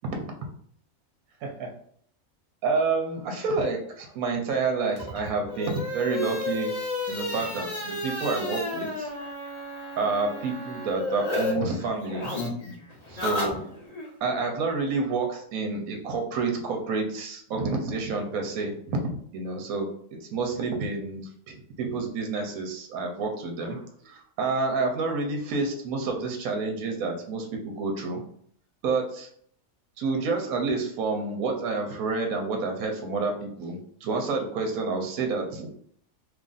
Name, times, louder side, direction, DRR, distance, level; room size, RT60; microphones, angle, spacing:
voice 1, 1.4-1.7 2.6-6.8 7.1-9.1 10.0-12.3 13.1-13.6 14.2-19.0 19.3-19.9 20.2-28.2 28.8-29.3 30.0-35.7, right 4 dB, 80° right, 3 dB, 1.1 m, -29 dB
sound 1, 4.9-11.5 11.8-14.1, left 2 dB, 30° left, 1.0 m, -32 dB
3.0 x 2.4 x 3.8 m, 0.63 s
omnidirectional pair, 1.5 m